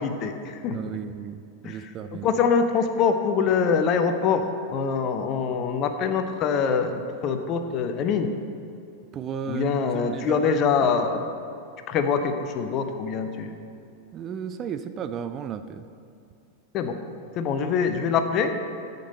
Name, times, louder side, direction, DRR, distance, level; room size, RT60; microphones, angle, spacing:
voice 1, 0.0-0.8 1.6-1.9 2.2-4.5 4.7-8.3 9.5-11.3 11.9-13.5 16.7-16.9 17.4-18.5, left 6 dB, 35° left, 8 dB, 0.7 m, -24 dB
voice 2, 0.7-2.3 9.1-10.7 14.1-15.9, right 7 dB, 30° right, 10 dB, 0.4 m, -34 dB
14.0 x 5.3 x 4.1 m, 2.5 s
figure-of-eight pair, 90°, 0 cm